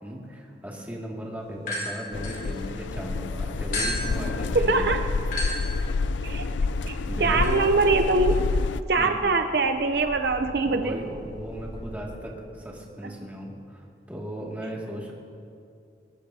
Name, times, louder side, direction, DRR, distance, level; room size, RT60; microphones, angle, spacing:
voice 1, 0.0-5.1 7.0-7.7 9.0-9.2 10.6-15.1, equal, 10° right, -3 dB, 2.2 m, -37 dB
sound 1, 1.6-3.1 3.7-12.0, left 1 dB, 50° left, 4.5 m, -37 dB
sound 2, 2.1-8.8, left 3 dB, 90° left, 0.4 m, -28 dB
voice 2, 4.5-5.0 6.2-6.5 6.9-8.4 8.9-11.0, right 3 dB, 60° right, 6 dB, 0.6 m, -23 dB
21.5 x 19.0 x 2.8 m, 2.4 s
head